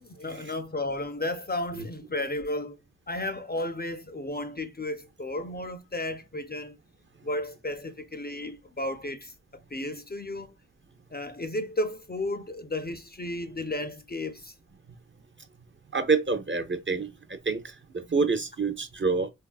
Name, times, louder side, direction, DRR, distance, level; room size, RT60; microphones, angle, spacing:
voice 1, 0.0-2.8 3.1-6.8 7.2-9.3 9.7-10.5 11.1-14.5, left 1 dB, 30° left, 0.4 m, -33 dB
voice 2, 15.9-19.3, right 4 dB, 35° right, 0.5 m, -28 dB
3.2 x 2.3 x 2.3 m
wide cardioid pair, 55°, 33 cm